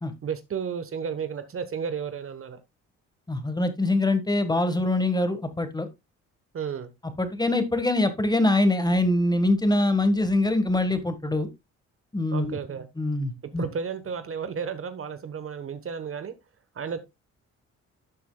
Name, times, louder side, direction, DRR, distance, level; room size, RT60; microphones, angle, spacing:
voice 1, 0.2-2.6 6.5-6.9 12.3-12.9 13.6-16.3 16.7-17.0, right 6 dB, 45° right, 1.2 m, -32 dB
voice 2, 3.3-5.9 7.2-11.5 12.1-12.6 13.0-13.6, left 2 dB, 15° left, 1.5 m, -24 dB
12.0 x 6.8 x 2.3 m
cardioid pair, 90°, 30 cm